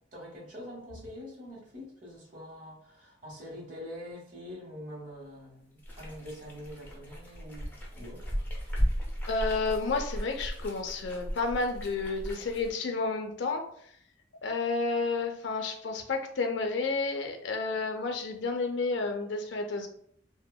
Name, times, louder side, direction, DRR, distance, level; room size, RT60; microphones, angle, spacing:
voice 1, 0.1-8.3, equal, 45° right, -2 dB, 0.9 m, -45 dB
sound 1, 5.8-12.7, equal, 10° left, 0.5 m, -35 dB
voice 2, 9.3-13.7 14.4-19.9, left 3 dB, 70° left, 5 dB, 0.4 m, -31 dB
2.8 x 2.1 x 2.2 m, 0.64 s
head